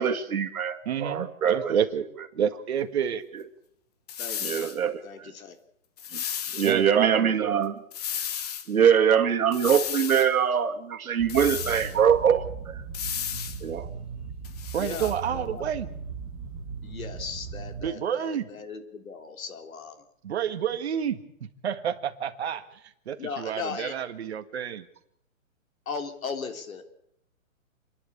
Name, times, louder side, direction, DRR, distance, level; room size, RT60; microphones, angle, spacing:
voice 1, 0.0-1.7 4.4-5.3 6.1-6.2 6.5-7.7 8.7-12.8 13.6-13.9, right 8 dB, 85° right, 6 dB, 2.4 m, -23 dB
voice 2, 0.9-2.1 2.3-3.2 6.6-7.6 14.7-15.9 17.8-18.5 20.2-21.2 21.6-22.7 23.1-24.9, right 8 dB, 50° right, 8 dB, 1.8 m, -29 dB
sound 1, 4.1-4.8 6.0-6.8 7.9-8.7 9.5-10.3 11.3-12.0 12.9-13.6 14.4-15.2, left 9 dB, 30° left, 1.1 m, -33 dB
voice 3, 4.2-4.6 5.0-5.6 14.8-15.7 16.8-20.0 23.2-23.9 25.9-26.8, left 5 dB, 75° left, 8 dB, 3.5 m, -37 dB
sound 2, 11.2-17.9, right 5 dB, 10° right, 1.6 m, -38 dB
29.5 x 11.0 x 8.5 m, 0.73 s
hypercardioid pair, 170°, 42 cm